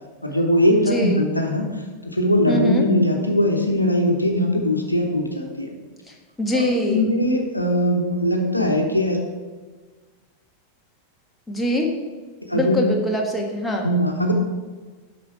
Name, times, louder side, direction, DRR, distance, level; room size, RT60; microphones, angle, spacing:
voice 1, 0.2-1.7 2.0-5.7 6.5-9.2 12.5-12.9 13.8-14.3, left 1 dB, 85° left, 2 dB, 1.0 m, -20 dB
voice 2, 0.7-1.2 2.5-2.9 6.4-7.1 11.5-11.9 12.5-13.9, equal, 10° left, 0 dB, 1.4 m, -23 dB
7.9 x 6.1 x 4.7 m, 1.4 s
figure-of-eight pair, 90°, 0 cm